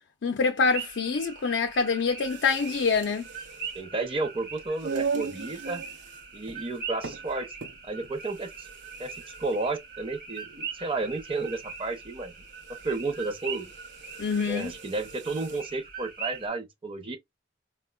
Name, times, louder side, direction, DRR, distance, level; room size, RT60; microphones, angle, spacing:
voice 1, 0.2-3.3 14.2-14.7, left 4 dB, 75° left, 0.4 m, -25 dB
sound 1, 0.6-16.5, right 6 dB, 55° right, 1.0 m, -42 dB
sound 2, 2.1-15.7, right 5 dB, 85° right, 0.6 m, -40 dB
voice 2, 3.7-5.8 6.3-7.5 7.8-8.7 9.0-12.3 12.8-13.7 14.5-17.2, right 3 dB, 30° right, 0.6 m, -32 dB
4.3 x 2.1 x 2.2 m
head